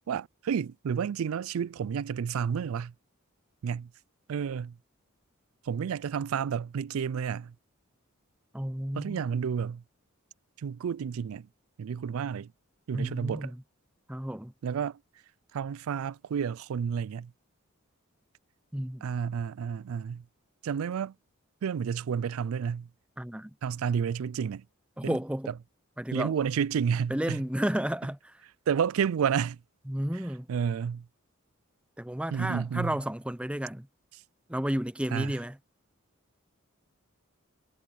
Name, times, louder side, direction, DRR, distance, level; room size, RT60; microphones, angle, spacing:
voice 1, 0.1-2.9 3.6-3.9 4.3-4.8 5.6-7.6 9.0-9.8 10.6-11.5 11.8-12.5 12.9-13.5 14.6-15.0 15.5-17.3 19.0-20.2 20.6-21.1 21.6-22.9 23.6-24.7 25.0-25.2 26.1-27.4 28.7-29.6 30.5-31.1 32.3-33.0 35.1-35.4, right 7 dB, 75° right, 0.3 m, -30 dB
voice 2, 8.5-9.2 12.9-13.5 14.1-14.5 18.7-19.1 23.2-23.5 25.0-25.5 26.0-26.3 27.1-28.3 29.9-30.5 32.0-33.9 34.5-35.6, equal, 5° right, 0.7 m, -32 dB
head